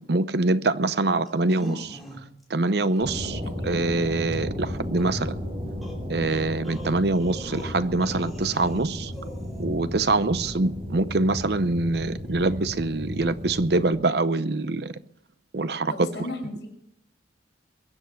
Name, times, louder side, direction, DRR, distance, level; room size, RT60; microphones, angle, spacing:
voice 1, 0.1-2.0 2.5-5.4 6.1-9.1 9.6-14.9 15.5-16.1, right 2 dB, 60° right, 0.7 m, -24 dB
sound 1, 1.3-2.4 2.8-3.0 5.0-5.1 5.8-8.8 9.1-9.6, equal, ahead, 2.9 m, -42 dB
sound 2, 3.0-13.9, left 1 dB, 35° right, 4.3 m, -34 dB
voice 2, 3.4-3.8 15.9-16.7, left 1 dB, 65° left, 5.4 m, -36 dB
22.5 x 8.1 x 6.4 m
head